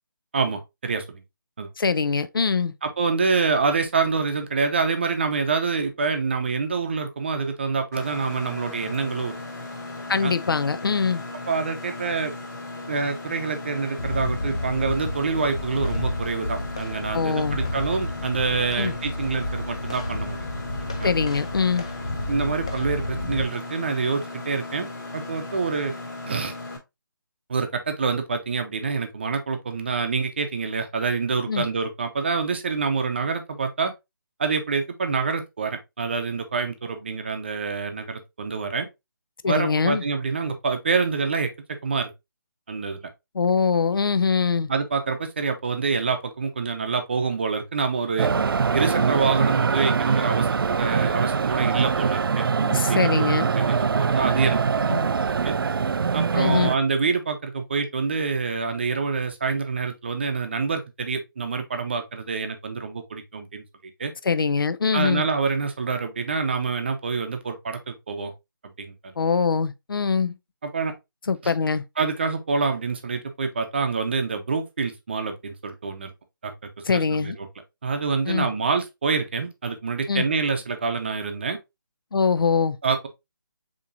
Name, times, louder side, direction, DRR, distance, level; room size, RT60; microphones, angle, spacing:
voice 1, 0.3-1.2 1.6-1.7 2.8-9.4 10.2-10.3 11.5-12.3 12.9-20.5 20.8-21.1 22.3-25.9 26.3-26.5 27.5-33.9 34.4-38.9 39.5-42.1 42.7-43.1 44.7-48.3 48.7-52.5 52.7-54.9 55.4-55.5 56.1-63.6 64.0-64.1 64.9-68.3 68.6-69.1 70.6-70.9 71.4-71.5 72.0-76.1 76.4-76.5 76.9-77.5 77.8-81.6 82.8-83.1, right 4 dB, 30° right, 0.7 m, -26 dB
voice 2, 1.8-2.7 10.1-11.2 17.1-17.6 18.8-18.9 21.0-21.9 31.5-31.7 39.4-40.0 43.3-44.7 48.3-48.4 52.6-53.5 54.9-55.1 56.3-56.7 64.2-65.3 69.2-70.4 71.3-71.8 76.9-77.4 78.3-78.5 80.1-80.3 82.1-82.8, left 5 dB, 80° left, 0.6 m, -23 dB
Mechanisms, 7.9-26.8, left 2 dB, 45° left, 2.6 m, -37 dB
sound 1, 14.0-23.4, left 1 dB, 15° left, 0.4 m, -31 dB
sound 2, 48.2-56.8, right 5 dB, 90° right, 0.4 m, -23 dB
6.9 x 2.9 x 2.5 m
hypercardioid pair, 175°, 11 cm